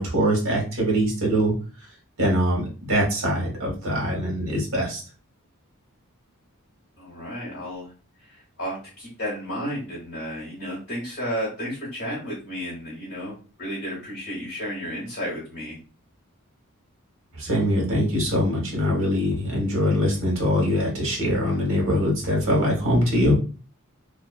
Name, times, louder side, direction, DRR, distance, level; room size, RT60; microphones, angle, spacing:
voice 1, 0.0-1.5 2.2-5.0 17.3-23.4, equal, 60° right, -2 dB, 1.2 m, -23 dB
voice 2, 7.0-7.9 8.2-15.8, equal, 50° left, -6 dB, 1.2 m, -32 dB
2.6 x 2.4 x 2.4 m, 0.36 s
head